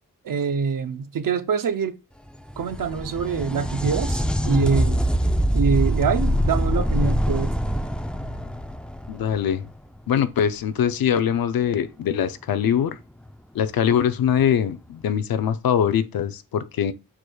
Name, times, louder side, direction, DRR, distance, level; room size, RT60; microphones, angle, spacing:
voice 1, 0.2-2.0 2.6-5.0 5.5-7.5, right 6 dB, 70° right, 0.7 m, -24 dB
sound 1, 2.3-9.9 13.3-13.4 14.4-14.5, equal, 5° left, 0.5 m, -24 dB
voice 2, 9.1-9.6 10.1-13.0 13.5-16.9, left 8 dB, 80° left, 0.5 m, -22 dB
4.8 x 4.6 x 2.3 m
cardioid pair, 45°, 35 cm